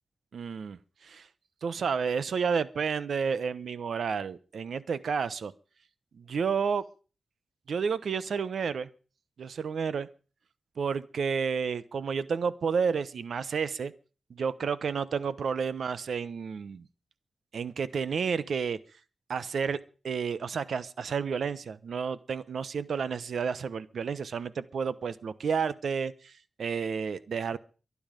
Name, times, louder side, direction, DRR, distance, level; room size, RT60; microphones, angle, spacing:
voice 1, 0.3-1.2 1.6-5.5 6.2-6.8 7.7-8.9 9.4-10.1 10.8-13.9 14.3-16.9 17.5-18.8 19.3-19.8 20.0-26.3 26.6-27.6, right 6 dB, 70° right, 15 dB, 1.0 m, -31 dB
23.0 x 9.7 x 5.2 m, 0.38 s
wide cardioid pair, 120°, 0 cm